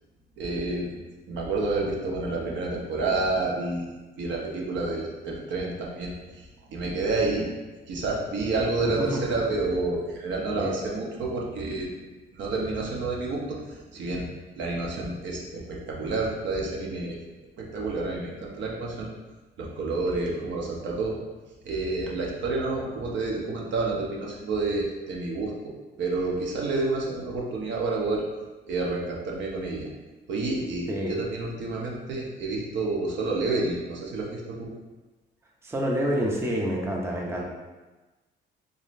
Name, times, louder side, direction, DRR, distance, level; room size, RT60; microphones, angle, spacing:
voice 1, 0.4-0.9 1.3-3.9 4.2-6.4 6.7-7.5 7.9-11.9 12.3-14.3 14.6-17.2 17.6-19.1 19.6-21.2 21.6-25.7 26.0-28.2 28.7-29.9 30.3-34.7, right 3 dB, 70° right, -2 dB, 0.8 m, -29 dB
voice 2, 8.8-9.2 10.5-10.7 30.9-31.1 35.6-37.4, equal, 15° right, -1 dB, 0.6 m, -28 dB
3.8 x 3.0 x 2.5 m, 1.2 s
cardioid pair, 90°, 20 cm